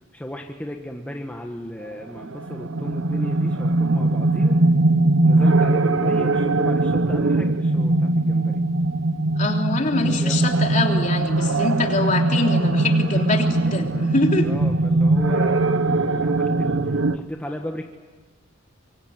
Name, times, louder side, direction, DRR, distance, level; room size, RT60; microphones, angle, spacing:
voice 1, 0.1-4.7 5.2-8.6 10.0-10.8 13.1-13.2 13.6-14.0 14.4-17.8, equal, 5° left, 2 dB, 1.5 m, -35 dB
sound 1, 1.8-17.2, right 2 dB, 85° right, 0.9 m, -20 dB
voice 2, 9.4-14.5, left 2 dB, 40° left, 2 dB, 3.3 m, -24 dB
25.5 x 24.0 x 9.4 m, 1.3 s
head